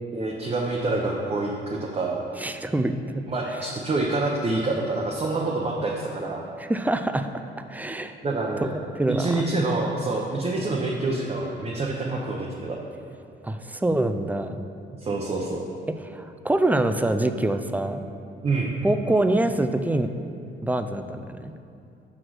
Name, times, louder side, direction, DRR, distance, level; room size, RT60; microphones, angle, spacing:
voice 1, 0.1-2.2 3.3-6.4 8.2-8.7 9.1-12.8 15.0-15.6 18.4-18.8, right 2 dB, 30° right, -2 dB, 0.8 m, -27 dB
voice 2, 2.4-3.3 6.6-7.3 7.7-8.1 8.6-8.7 8.9-9.4 13.4-14.6 16.1-18.0 18.8-20.1 20.6-21.5, right 1 dB, 10° right, 8 dB, 0.4 m, -25 dB
6.1 x 4.8 x 6.1 m, 2.5 s
cardioid pair, 90°, 20 cm